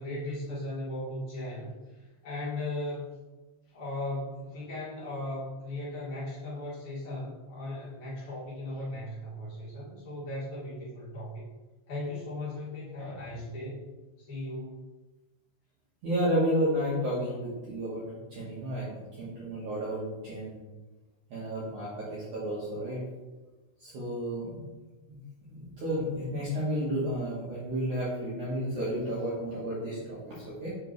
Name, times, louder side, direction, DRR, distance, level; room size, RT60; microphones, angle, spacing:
voice 1, 0.0-3.1 3.7-11.5 11.9-13.9 14.2-14.8, left 1 dB, 50° left, -9 dB, 2.8 m, -37 dB
voice 2, 16.0-18.1 18.3-20.6 21.3-23.0 23.8-24.7 25.1-25.2 25.5-30.7, equal, 75° right, -7 dB, 1.8 m, -32 dB
7.6 x 5.2 x 3.1 m, 1.2 s
omnidirectional pair, 5.4 m